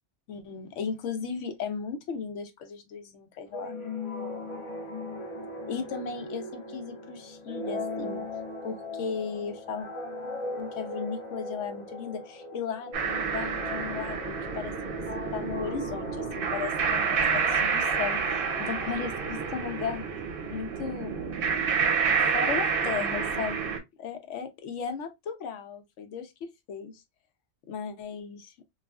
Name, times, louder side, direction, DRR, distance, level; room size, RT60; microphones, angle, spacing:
voice 1, 0.3-3.8 5.7-8.3 8.6-9.9 10.6-20.1 20.4-21.2 22.2-26.9 27.7-28.5, left 6 dB, 80° left, 0.9 m, -36 dB
sound 1, 3.5-19.9, left 2 dB, 45° left, 0.4 m, -39 dB
sound 2, 12.9-23.8, right 6 dB, 55° right, 0.7 m, -29 dB
3.1 x 2.3 x 2.3 m
omnidirectional pair, 1.3 m